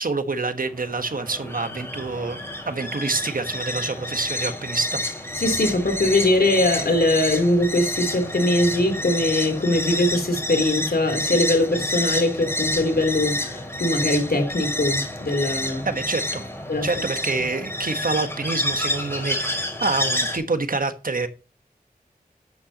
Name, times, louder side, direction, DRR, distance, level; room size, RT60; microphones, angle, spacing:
voice 1, 0.0-5.0 15.8-16.4 16.8-21.3, right 3 dB, 65° right, 1.4 m, -27 dB
sound 1, 0.7-20.4, left 1 dB, 15° left, 5.4 m, -29 dB
voice 2, 5.4-15.9 16.7-16.9, left 1 dB, 85° left, 3.7 m, -21 dB
12.5 x 8.8 x 3.0 m
wide cardioid pair, 60°, 16 cm